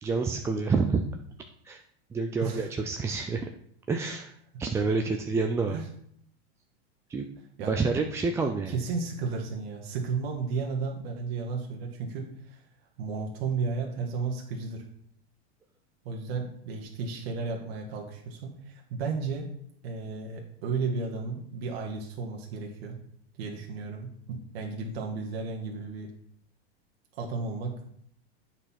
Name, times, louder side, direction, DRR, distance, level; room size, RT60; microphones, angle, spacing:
voice 1, 0.0-1.0 1.6-1.8 2.1-3.5 3.9-4.3 4.6-5.8 7.1-7.3 7.7-8.8, right 4 dB, 10° right, 3 dB, 0.3 m, -28 dB
voice 2, 8.7-12.6 13.0-14.9 16.0-19.5 19.8-23.0 23.4-26.1 27.1-27.7, right 4 dB, 65° right, 0 dB, 1.5 m, -33 dB
8.0 x 4.4 x 5.8 m, 0.68 s
supercardioid pair, 125°, 32 cm